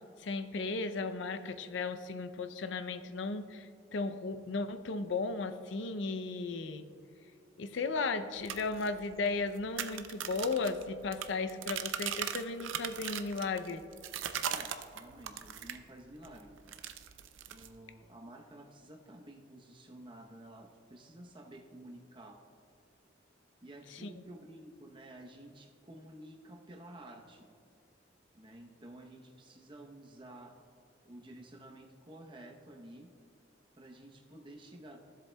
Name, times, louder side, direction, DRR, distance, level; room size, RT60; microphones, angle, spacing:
voice 1, 0.2-6.8 7.6-13.8 24.0-24.1, left 3 dB, 75° left, 10 dB, 0.5 m, -35 dB
sound 1, 8.4-15.9 16.2-17.8, right 9 dB, 90° right, 0.5 m, -39 dB
voice 2, 14.5-16.6 17.5-22.4 23.6-27.5 28.3-30.6 31.0-33.1 33.7-35.0, right 1 dB, 25° right, 2 dB, 0.8 m, -52 dB
15.5 x 7.6 x 2.2 m, 2.5 s
head